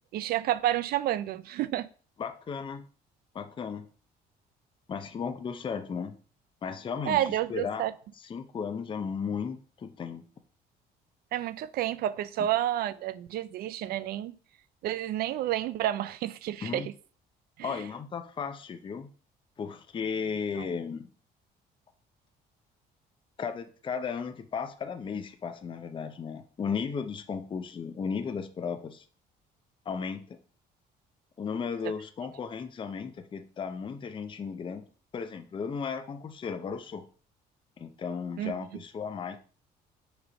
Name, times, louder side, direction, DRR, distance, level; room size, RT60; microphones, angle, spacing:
voice 1, 0.1-1.9 7.1-7.9 11.3-14.3 14.8-16.9 17.6-17.8 38.4-38.5, right 12 dB, 65° right, 0.4 m, -30 dB
voice 2, 2.2-2.9 3.3-3.9 4.9-6.1 6.6-7.9 8.2-10.2 16.6-16.9 17.6-19.1 19.6-21.1 23.4-29.0 29.9-30.4 31.4-34.8 35.1-37.0 37.8-39.4, left 6 dB, 30° left, 0.6 m, -35 dB
6.1 x 3.1 x 5.1 m
cardioid pair, 110°, 17 cm